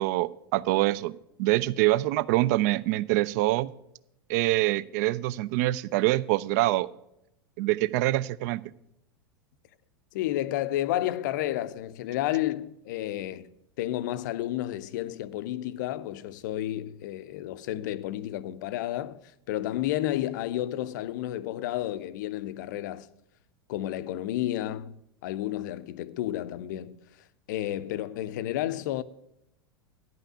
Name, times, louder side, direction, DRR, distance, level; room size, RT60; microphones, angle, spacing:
voice 1, 0.0-3.7 4.3-6.9 7.6-8.6, right 17 dB, 45° right, 0.4 m, -25 dB
voice 2, 10.1-13.5 13.8-23.1 23.7-27.0 27.5-29.0, left 13 dB, 50° left, 0.5 m, -31 dB
10.5 x 5.6 x 7.9 m
figure-of-eight pair, 90°, 13 cm